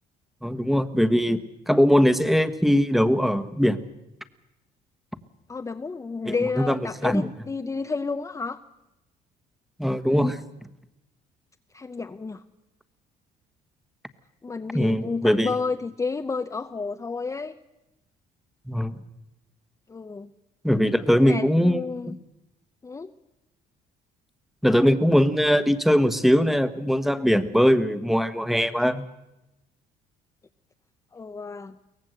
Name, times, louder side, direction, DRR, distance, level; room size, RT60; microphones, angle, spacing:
voice 1, 0.4-1.4 1.7-3.8 6.2-7.3 9.8-10.4 14.7-15.5 18.7-19.0 20.6-22.2 24.6-29.0, equal, ahead, 11 dB, 1.3 m, -21 dB
voice 2, 5.5-8.6 11.7-12.4 14.4-17.6 19.9-20.3 21.1-22.2 22.8-23.1 31.1-31.8, left 4 dB, 20° left, 8 dB, 0.7 m, -31 dB
23.5 x 18.0 x 7.8 m, 0.93 s
cardioid pair, 110°, 17 cm